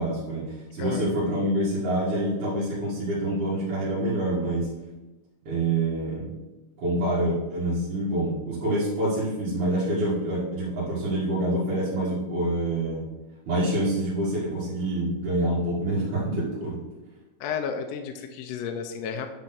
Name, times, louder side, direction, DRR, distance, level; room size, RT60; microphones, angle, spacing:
voice 1, 0.0-4.7 5.5-6.3 6.8-13.1 13.5-16.8, right 1 dB, 90° right, -9 dB, 3.6 m, -26 dB
voice 2, 0.8-1.1 17.4-19.3, left 7 dB, 75° left, 5 dB, 1.6 m, -32 dB
10.5 x 4.0 x 6.0 m, 1.1 s
omnidirectional pair, 3.4 m